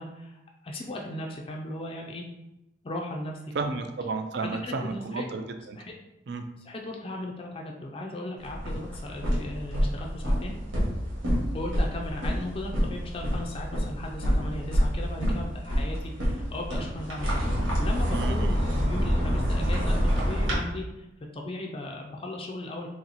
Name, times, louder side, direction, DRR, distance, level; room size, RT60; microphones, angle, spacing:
voice 1, 0.0-2.2 2.8-3.4 4.4-5.3 5.8-5.9 6.7-10.5 11.5-21.1 21.3-22.9, left 1 dB, 30° left, 0 dB, 0.4 m, -37 dB
voice 2, 3.5-5.8 6.3-6.4 18.1-18.6, right 3 dB, 55° right, 7 dB, 0.4 m, -32 dB
sound 1, 8.4-20.6, equal, 85° right, 1.4 m, -27 dB
3.0 x 2.9 x 4.0 m, 0.92 s
head